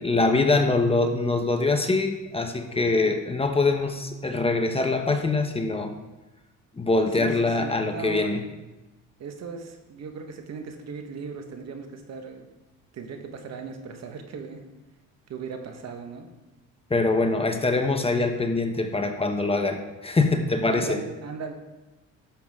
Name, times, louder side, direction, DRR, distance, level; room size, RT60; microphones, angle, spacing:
voice 1, 0.0-5.9 6.8-8.4 16.9-21.0, left 3 dB, 20° left, 5 dB, 0.9 m, -24 dB
voice 2, 7.1-8.4 9.2-12.5 12.9-14.6 15.3-16.3 20.7-21.5, right 5 dB, 55° right, 5 dB, 1.3 m, -37 dB
11.5 x 7.1 x 3.6 m, 1.1 s
cardioid pair, 100°, 32 cm